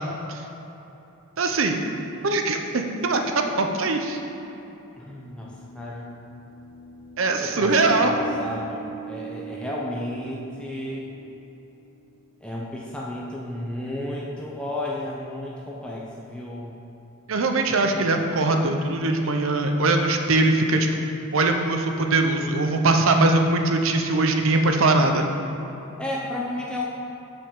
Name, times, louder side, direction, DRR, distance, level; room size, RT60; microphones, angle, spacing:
voice 1, 1.4-1.8 2.2-4.2 7.2-8.1 17.3-20.9 21.3-25.2, right 2 dB, 70° right, 4 dB, 0.6 m, -21 dB
sound 1, 3.1-3.2 4.7-11.6, right 5 dB, 10° right, 1.1 m, -40 dB
voice 2, 5.0-6.1 7.4-11.1 12.4-16.8 26.0-26.9, left 1 dB, 5° left, -5 dB, 0.5 m, -33 dB
7.4 x 6.7 x 3.7 m, 3.0 s
head